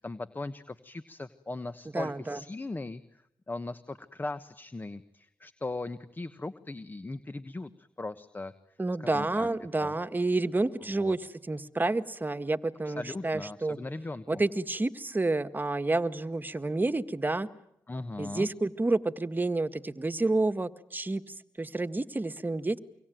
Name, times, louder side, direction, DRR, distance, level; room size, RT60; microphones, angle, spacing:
voice 1, 0.0-3.0 3.5-8.5 9.0-9.5 9.8-9.9 11.0-11.1 12.8-14.2 17.9-18.5, left 2 dB, 25° left, 13 dB, 1.3 m, -38 dB
voice 2, 1.9-2.4 8.8-13.8 14.3-17.5 18.2-22.8, right 2 dB, 25° right, 12 dB, 1.6 m, -29 dB
25.0 x 24.5 x 9.3 m, 0.79 s
cardioid pair, 60°, 8 cm